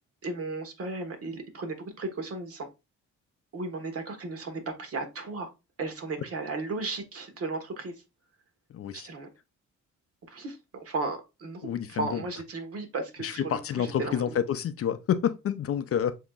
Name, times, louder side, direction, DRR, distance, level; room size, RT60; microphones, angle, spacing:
voice 1, 0.2-2.7 3.5-5.5 5.8-7.9 8.9-9.3 10.3-14.3, right 3 dB, 50° right, 1.4 m, -35 dB
voice 2, 8.7-9.1 11.6-12.2 13.2-16.2, left 9 dB, 50° left, 0.5 m, -29 dB
7.3 x 2.9 x 2.4 m
cardioid pair, 90°, 30 cm